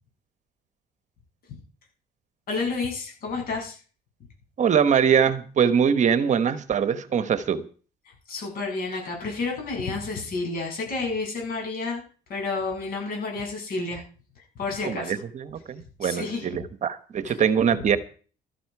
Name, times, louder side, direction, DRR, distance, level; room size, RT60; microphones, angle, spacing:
voice 1, 2.5-3.8 8.3-12.0 12.3-14.0 14.6-15.2 16.0-16.6 17.2-17.4, left 3 dB, 60° left, 7.4 m, -30 dB
voice 2, 4.6-7.6 14.8-18.0, right 7 dB, 45° right, 1.2 m, -23 dB
14.0 x 13.5 x 4.8 m
cardioid pair, 110°, 17 cm